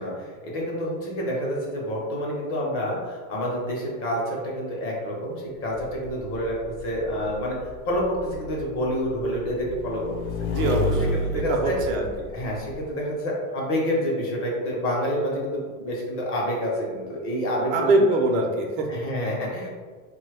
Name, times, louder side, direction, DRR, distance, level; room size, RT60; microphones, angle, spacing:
voice 1, 0.0-7.6 7.9-10.2 11.1-11.8 12.3-17.9 18.9-19.7, equal, 30° left, -3 dB, 0.8 m, -28 dB
Motorcycle / Engine, 5.7-12.8, left 2 dB, 80° left, 0.6 m, -31 dB
voice 2, 10.4-12.3 17.7-18.9, right 2 dB, 65° right, 1 dB, 0.7 m, -24 dB
3.0 x 2.3 x 3.3 m, 1.5 s
supercardioid pair, 135°, 42 cm